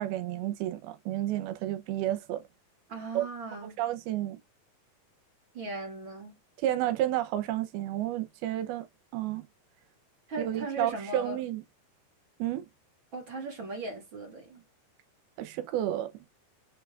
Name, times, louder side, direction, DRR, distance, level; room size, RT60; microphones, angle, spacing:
voice 1, 0.0-2.4 3.1-3.2 3.5-4.4 6.6-8.9 9.1-9.5 10.4-11.6 12.4-12.7 15.4-16.1, right 13 dB, 85° right, 2.7 m, -31 dB
voice 2, 2.9-3.8 5.5-6.4 10.3-11.4 13.1-14.6, right 2 dB, 40° right, 2.1 m, -38 dB
6.7 x 6.0 x 2.3 m
omnidirectional pair, 4.3 m